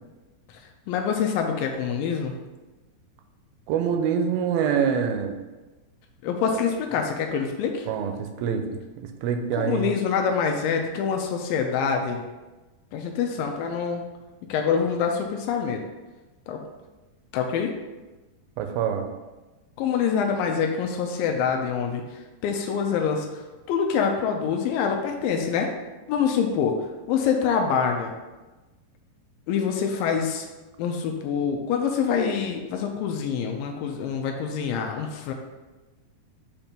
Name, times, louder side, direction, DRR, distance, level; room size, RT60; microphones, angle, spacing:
voice 1, 0.5-2.3 6.2-7.9 9.5-12.2 12.9-14.0 14.5-15.8 16.5-16.6 17.3-17.7 19.8-25.7 26.1-28.1 29.5-30.5 30.8-35.3, left 6 dB, 85° left, 3 dB, 2.0 m, -26 dB
voice 2, 3.7-5.4 7.9-8.8 9.2-9.9 18.6-19.1, right 7 dB, 80° right, 5 dB, 2.2 m, -25 dB
7.0 x 2.9 x 5.2 m, 1.2 s
omnidirectional pair, 4.5 m